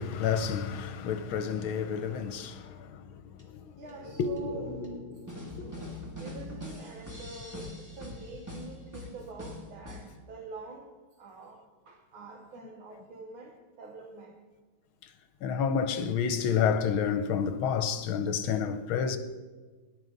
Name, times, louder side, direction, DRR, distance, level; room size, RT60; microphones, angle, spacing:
voice 1, 0.0-3.6 4.2-4.3 5.6-5.9 15.4-19.2, left 7 dB, 75° left, 1.5 m, -30 dB
sound 1, 3.4-3.5 3.9-4.0 4.4-4.5 4.8-4.9 5.3-10.1, left 1 dB, 10° right, 2.1 m, -43 dB
sound 2, 3.7-7.5 7.8-7.9, left 1 dB, 55° right, 6.0 m, -45 dB
voice 2, 3.8-4.7 5.5-5.9 6.2-10.9 11.2-14.4, right 3 dB, 70° right, 2.0 m, -46 dB
19.5 x 11.0 x 3.9 m
omnidirectional pair, 2.3 m